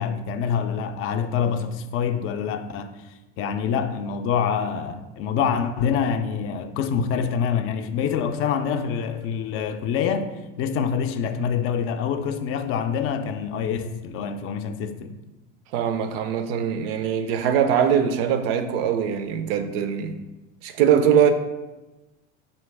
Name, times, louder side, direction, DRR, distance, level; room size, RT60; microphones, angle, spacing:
voice 1, 0.0-2.9 3.4-10.3 10.6-15.1, left 7 dB, 45° left, 0.4 m, -26 dB
voice 2, 15.7-20.2 20.6-21.3, right 8 dB, 80° right, 0.5 m, -22 dB
4.3 x 3.0 x 3.3 m
supercardioid pair, 110°, 30 cm